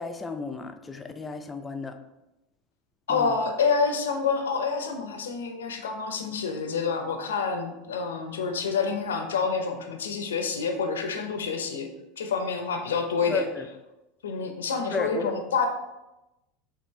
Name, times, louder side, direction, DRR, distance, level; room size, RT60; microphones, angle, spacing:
voice 1, 0.0-2.0 3.1-3.4 13.3-13.7 14.9-15.3, left 4 dB, 20° left, 7 dB, 0.4 m, -33 dB
voice 2, 3.1-11.9 12.2-13.4 14.2-15.7, left 5 dB, 75° left, 5 dB, 0.6 m, -28 dB
5.6 x 2.5 x 3.1 m, 0.96 s
figure-of-eight pair, 80°, 0 cm